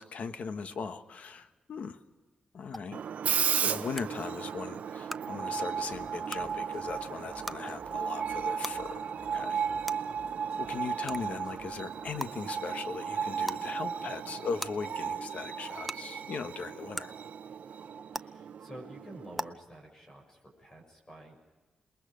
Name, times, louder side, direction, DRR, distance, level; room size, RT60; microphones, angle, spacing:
voice 1, 0.0-2.0 2.5-3.0 3.5-9.1 9.3-9.6 10.6-17.1, left 5 dB, 65° left, 9 dB, 1.3 m, -39 dB
sound 1, 2.7-2.8 4.0-4.1 5.1-5.2 6.3-6.4 7.5-7.6 8.6-8.7 9.9-10.0 11.1-11.2 12.2-12.3 13.4-13.6 14.6-14.7 15.9-16.0 16.9-17.0 18.1-18.2 19.4-19.5, equal, ahead, 0.6 m, -36 dB
Screech, 2.9-19.5, right 7 dB, 70° right, 0.7 m, -35 dB
sound 2, 5.7-12.5, right 3 dB, 25° right, 3.3 m, -57 dB
voice 2, 18.1-21.4, right 1 dB, 25° left, 1 dB, 6.5 m, -49 dB
27.5 x 21.5 x 5.1 m, 1.2 s
wide cardioid pair, 110°, 3 cm